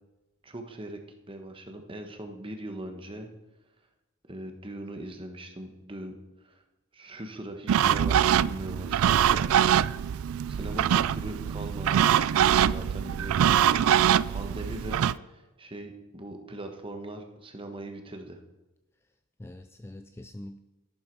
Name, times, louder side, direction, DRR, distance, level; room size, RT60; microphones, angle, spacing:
voice 1, 0.4-1.0 1.3-3.3 4.3-6.1 6.4-6.6 6.9-9.6 10.5-13.6 14.3-15.0 15.3-18.4, right 1 dB, 25° right, 4 dB, 1.3 m, -40 dB
sound 1, 7.7-15.1, right 9 dB, 70° right, 0.3 m, -23 dB
voice 2, 10.6-11.0 14.4-14.6 19.4-20.6, left 1 dB, 10° left, 8 dB, 0.3 m, -44 dB
13.0 x 11.5 x 4.7 m, 1.1 s
head